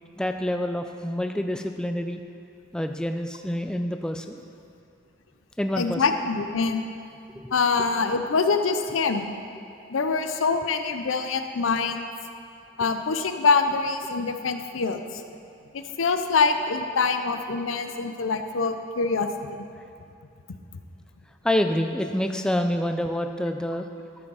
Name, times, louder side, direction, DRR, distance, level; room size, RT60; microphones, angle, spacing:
voice 1, 0.2-2.2 2.7-4.4 5.6-6.0 7.4-7.5 19.8-19.9 21.4-23.9, left 1 dB, 5° left, 6 dB, 0.3 m, -27 dB
voice 2, 5.8-6.9 7.5-9.3 9.9-12.0 12.8-15.2 15.7-19.3, left 4 dB, 90° left, 7 dB, 0.6 m, -24 dB
13.0 x 6.1 x 4.8 m, 2.5 s
head